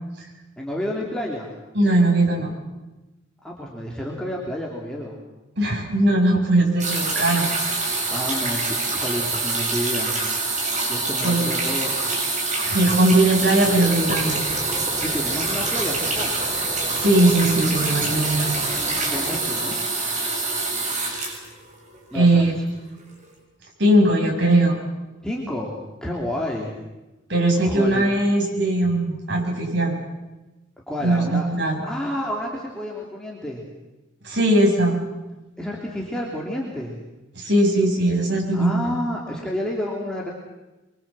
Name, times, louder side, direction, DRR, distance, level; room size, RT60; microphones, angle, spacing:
voice 1, 0.6-1.5 3.4-5.1 8.1-10.2 10.9-11.9 14.9-16.4 19.1-19.8 22.1-22.6 25.2-26.7 27.6-28.1 30.9-31.5 31.8-33.6 35.6-37.0 38.5-40.3, equal, 5° left, -3 dB, 3.1 m, -30 dB
voice 2, 1.7-2.5 5.6-7.5 11.2-11.5 12.6-14.4 16.9-18.6 22.1-22.5 23.8-24.8 27.3-29.9 31.0-31.8 34.2-35.0 37.4-38.9, right 1 dB, 65° right, 1 dB, 6.8 m, -19 dB
sound 1, 6.8-22.2 23.1-23.2, right 3 dB, 40° right, 7.0 m, -25 dB
sound 2, 13.6-19.4, equal, 25° right, 4.7 m, -36 dB
25.0 x 24.0 x 7.6 m, 1.1 s
head